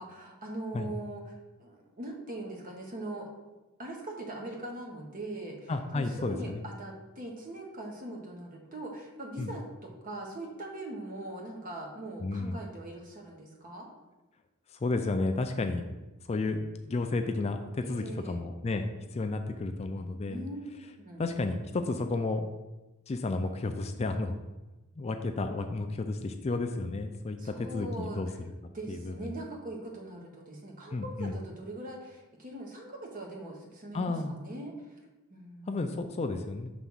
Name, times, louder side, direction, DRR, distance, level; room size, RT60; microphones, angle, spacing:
voice 1, 0.0-3.3 3.8-13.9 17.8-18.4 20.3-21.2 27.4-28.3 28.7-35.0 35.3-36.1, right 1 dB, 40° right, 1 dB, 1.1 m, -41 dB
voice 2, 5.7-6.6 9.4-9.5 12.2-12.6 14.7-15.9 16.3-18.8 19.1-20.5 21.2-22.5 23.1-24.4 25.0-28.3 28.9-29.1 30.9-31.4 33.9-34.4 35.7-36.7, left 3 dB, 30° left, 6 dB, 0.3 m, -32 dB
6.0 x 3.4 x 5.6 m, 1.1 s
head